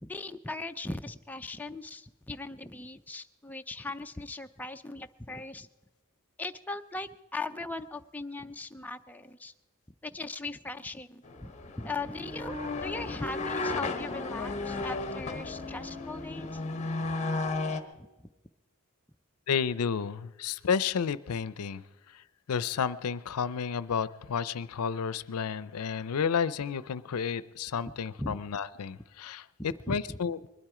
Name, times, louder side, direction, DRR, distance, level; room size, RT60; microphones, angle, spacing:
voice 1, 0.0-5.7 6.4-9.5 10.0-11.5 11.8-16.6 18.0-18.3 28.2-28.4 29.7-30.2, left 2 dB, 5° left, 6 dB, 0.4 m, -39 dB
sound 1, 11.2-17.8, left 3 dB, 30° left, 1.0 m, -34 dB
voice 2, 19.5-21.8 22.1-22.2 22.5-29.4 29.9-30.4, left 6 dB, 80° left, 17 dB, 0.5 m, -31 dB
21.0 x 12.0 x 4.9 m, 1.1 s
head